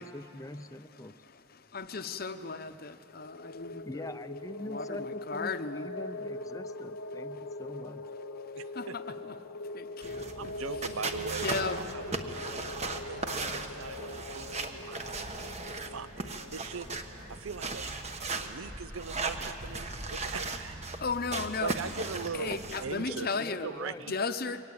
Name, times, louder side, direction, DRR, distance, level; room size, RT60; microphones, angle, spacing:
voice 1, 0.0-1.2 3.8-8.1 23.1-24.2, left 1 dB, 15° left, 11 dB, 0.5 m, -43 dB
voice 2, 1.2-4.1 4.7-5.9 8.7-9.0 9.7-10.3 11.4-11.9 21.0-21.7 22.3-23.7 24.1-24.6, left 4 dB, 45° left, 10 dB, 0.8 m, -35 dB
sound 1, 3.1-17.4, left 2 dB, 90° left, 0.6 m, -42 dB
voice 3, 8.6-9.1 10.4-15.2 15.6-15.7 15.9-16.9 17.3-17.9 18.4-21.0 21.4-23.4 23.6-24.1, right 5 dB, 80° right, 15 dB, 0.6 m, -40 dB
sound 2, 10.0-22.9, right 3 dB, 30° right, 1.2 m, -37 dB
23.5 x 18.0 x 8.7 m, 2.7 s
head